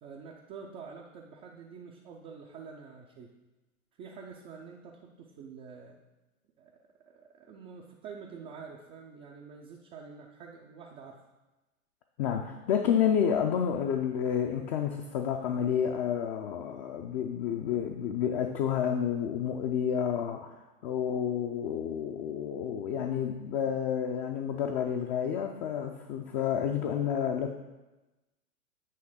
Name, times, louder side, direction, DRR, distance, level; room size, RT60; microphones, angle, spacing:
voice 1, 0.0-3.3 4.0-6.0 6.6-6.7 7.0-11.2, right 5 dB, 15° right, -2 dB, 0.4 m, -47 dB
voice 2, 12.2-20.5 20.8-27.5, left 8 dB, 35° left, 4 dB, 0.5 m, -30 dB
8.6 x 3.3 x 6.4 m, 1.1 s
figure-of-eight pair, 105°, 43 cm